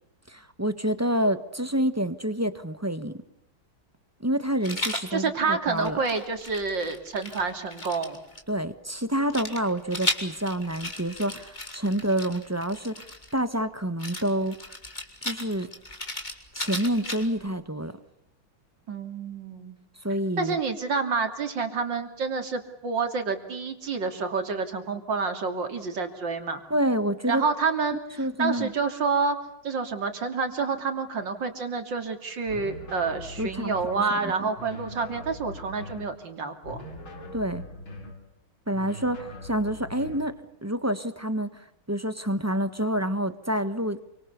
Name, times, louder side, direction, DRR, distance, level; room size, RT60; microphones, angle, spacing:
voice 1, 0.3-3.2 4.2-6.0 8.5-13.1 13.3-14.7 15.2-15.7 16.5-17.9 20.0-20.6 26.7-27.4 28.2-28.7 33.4-33.7 34.2-34.3 37.3-37.6 38.7-44.0, equal, 10° right, 12 dB, 0.9 m, -28 dB
Rattle, 4.6-5.1 5.8-8.4 9.3-13.4 14.0-17.5, left 1 dB, 20° left, 3.4 m, -35 dB
voice 2, 5.1-8.2 18.9-19.8 20.4-26.6 27.3-29.4 29.6-36.8, right 4 dB, 60° right, 7 dB, 3.5 m, -28 dB
sound 1, 32.5-34.0 34.6-36.1 36.6-38.2 38.7-40.3, left 1 dB, 70° left, 4.5 m, -41 dB
28.0 x 25.0 x 6.9 m, 0.85 s
omnidirectional pair, 2.3 m